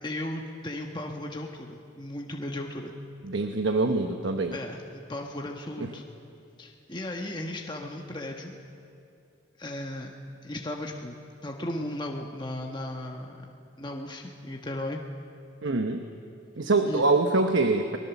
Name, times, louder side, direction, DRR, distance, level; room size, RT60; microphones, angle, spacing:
voice 1, 0.0-2.9 4.5-6.0 6.6-8.6 9.6-10.1 10.4-11.2 11.4-13.5 13.8-15.0 16.8-17.0, left 1 dB, 20° left, 1 dB, 1.2 m, -36 dB
voice 2, 3.2-4.6 15.6-16.0 16.6-18.0, right 3 dB, 70° right, 6 dB, 1.0 m, -24 dB
23.5 x 20.5 x 7.1 m, 2.6 s
head